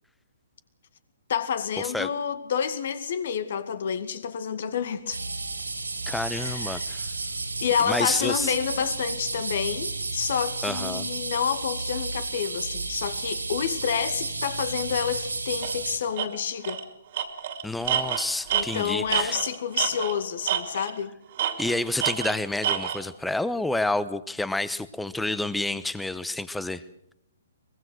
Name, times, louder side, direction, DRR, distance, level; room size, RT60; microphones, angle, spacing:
voice 1, 1.3-5.2 6.3-7.0 7.6-16.8 18.5-21.1, left 7 dB, 55° left, 2.1 m, -29 dB
sound 1, 5.1-16.0, right 3 dB, 85° right, 4.0 m, -32 dB
voice 2, 6.1-7.1 7.9-8.5 10.6-11.1 17.6-19.4 21.6-26.8, left 2 dB, 5° left, 1.0 m, -29 dB
Tools, 15.6-15.8 16.2-16.3 16.6-16.8 17.1-20.2 20.5-21.0 21.4-23.0, right 9 dB, 50° right, 2.7 m, -28 dB
23.5 x 21.0 x 6.3 m
figure-of-eight pair, 130°, 0 cm